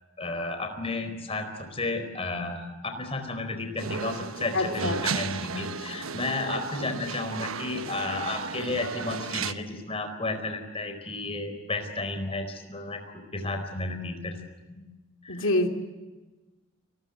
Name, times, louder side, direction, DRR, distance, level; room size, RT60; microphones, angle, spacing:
voice 1, 0.2-14.4 14.7-14.8 15.2-15.5, left 2 dB, 30° left, 7 dB, 4.4 m, -32 dB
sound 1, 3.8-9.5, right 5 dB, 80° right, 1.1 m, -34 dB
voice 2, 4.5-5.0 6.8-6.9 15.3-15.7, left 2 dB, 65° left, 4 dB, 3.0 m, -26 dB
29.5 x 20.5 x 8.1 m, 1.2 s
head